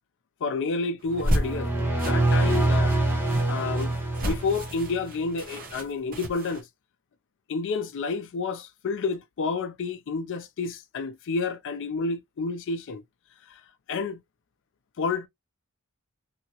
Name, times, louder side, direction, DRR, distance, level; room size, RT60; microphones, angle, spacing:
voice 1, 0.4-1.7 2.0-3.0 3.5-3.9 4.2-6.6 7.5-13.0 13.9-14.2 15.0-15.3, left 4 dB, 60° left, 0.4 m, -30 dB
sound 1, 1.0-6.6, equal, 40° right, 0.9 m, -32 dB
sound 2, 1.1-5.0, right 2 dB, 10° right, 0.9 m, -25 dB
2.7 x 2.7 x 2.8 m
head